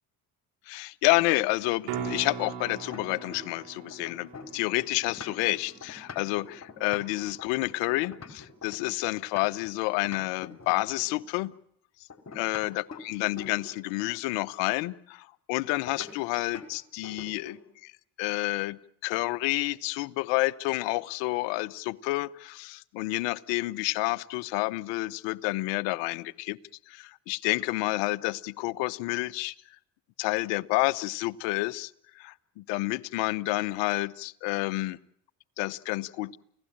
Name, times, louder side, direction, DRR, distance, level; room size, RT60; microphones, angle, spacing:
voice 1, 0.7-11.5 12.3-17.9 18.2-26.6 26.9-29.5 30.2-35.0 35.6-36.4, left 21 dB, 70° left, 17 dB, 1.0 m, -29 dB
sound 1, 1.6-3.6 3.9-9.7 10.0-11.2 12.1-13.9 15.9-16.1 16.5-16.7 17.0-17.7, left 4 dB, 35° left, 4.4 m, -45 dB
sound 2, 1.8-7.9 12.6-12.7, right 6 dB, 70° right, 4.7 m, -41 dB
29.5 x 17.0 x 8.8 m, 0.72 s
hypercardioid pair, 60°, 45 cm